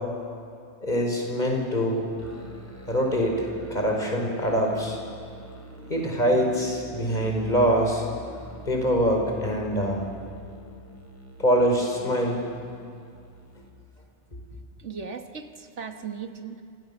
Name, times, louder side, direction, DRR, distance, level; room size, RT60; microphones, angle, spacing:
voice 1, 0.8-2.0 2.9-5.0 5.9-8.0 8.6-10.0 11.4-12.4, equal, 40° left, 1 dB, 5.1 m, -24 dB
Musical instrument, 2.2-13.8, right 1 dB, 10° left, 3.2 m, -45 dB
voice 2, 14.8-16.6, right 6 dB, 75° right, 6 dB, 1.7 m, -37 dB
27.5 x 27.0 x 7.1 m, 2.3 s
omnidirectional pair, 1.2 m